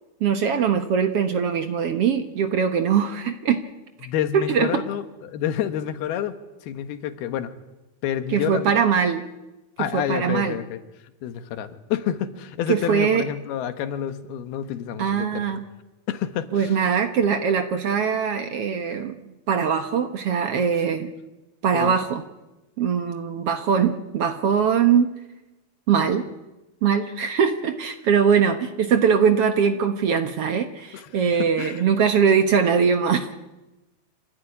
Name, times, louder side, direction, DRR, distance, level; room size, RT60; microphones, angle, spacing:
voice 1, 0.2-3.6 4.3-4.8 8.3-9.2 9.9-10.6 12.7-13.3 15.0-15.6 16.5-19.1 19.5-21.1 21.6-22.2 22.8-25.1 25.9-26.3 26.8-33.3, right 7 dB, 65° right, 7 dB, 1.5 m, -21 dB
voice 2, 4.0-6.4 6.6-7.5 8.0-8.7 9.8-10.8 11.2-15.6 16.1-16.8 21.7-21.9 30.9-31.1 31.4-31.8, left 10 dB, 90° left, 10 dB, 3.3 m, -28 dB
26.0 x 17.5 x 9.9 m, 1.0 s
omnidirectional pair, 4.3 m